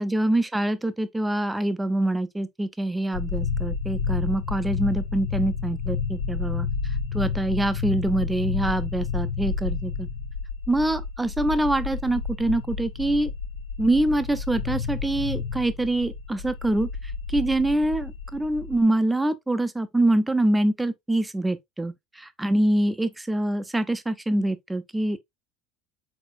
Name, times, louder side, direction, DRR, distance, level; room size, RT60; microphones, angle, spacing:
voice 1, 0.0-6.7 7.1-10.1 10.7-13.3 13.8-16.9 17.3-25.2, right 1 dB, 10° right, 0.6 m, -25 dB
sound 1, 3.1-18.8, left 5 dB, 80° left, 0.6 m, -30 dB
4.1 x 3.8 x 2.4 m
hypercardioid pair, 80°, 0 cm